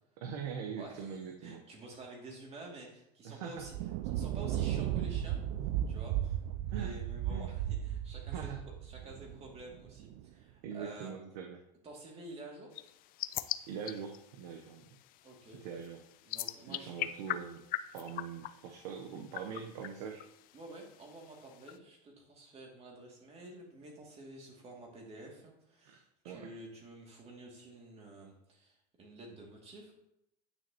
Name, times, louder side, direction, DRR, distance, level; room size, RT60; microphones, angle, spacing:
voice 1, 0.2-1.6 3.2-3.7 6.7-7.0 7.3-7.5 8.3-8.6 10.6-11.6 13.7-14.9 15.6-16.0 16.7-17.6 17.9-20.2 25.8-26.0 26.2-26.5, right 7 dB, 85° right, 3 dB, 0.9 m, -42 dB
voice 2, 0.8-3.7 4.1-5.4 5.9-6.4 6.6-8.5 8.8-11.1 11.8-12.7 15.2-15.6 16.2-16.9 20.5-29.9, right 2 dB, 30° right, -1 dB, 2.4 m, -50 dB
Thunder, 3.6-10.2, right 11 dB, 65° right, 0.4 m, -35 dB
sound 1, 12.7-21.8, left 14 dB, 45° left, 0.4 m, -43 dB
9.5 x 6.1 x 2.9 m, 0.81 s
supercardioid pair, 120°, 20 cm